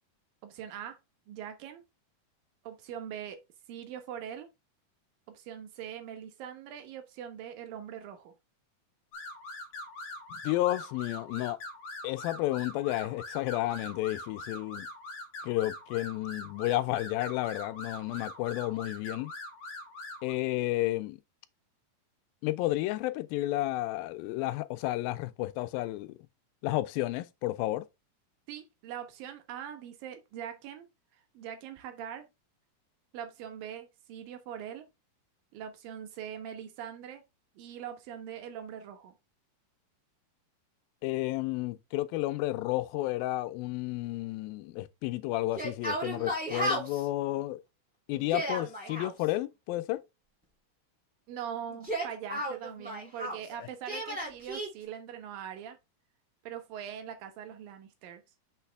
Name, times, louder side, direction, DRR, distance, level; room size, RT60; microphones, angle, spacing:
voice 1, 0.4-1.0 1.3-1.8 2.6-3.4 3.7-4.5 5.3-8.3 28.5-30.9 31.3-32.3 33.1-34.9 35.5-37.2 37.6-39.2 51.3-55.8 56.4-58.2, right 9 dB, 80° right, 2.9 m, -42 dB
sound 1, 9.1-20.3, left 2 dB, 55° left, 3.1 m, -43 dB
voice 2, 10.3-11.6 12.0-14.9 15.4-19.3 20.2-21.2 22.4-26.2 26.6-27.9 41.0-47.6 48.1-50.0 53.6-53.7, left 17 dB, 90° left, 2.4 m, -31 dB
Yell, 45.5-47.0 48.1-49.1 51.7-53.4 53.9-54.7, right 1 dB, 5° right, 2.6 m, -34 dB
6.3 x 5.7 x 3.4 m
omnidirectional pair, 4.1 m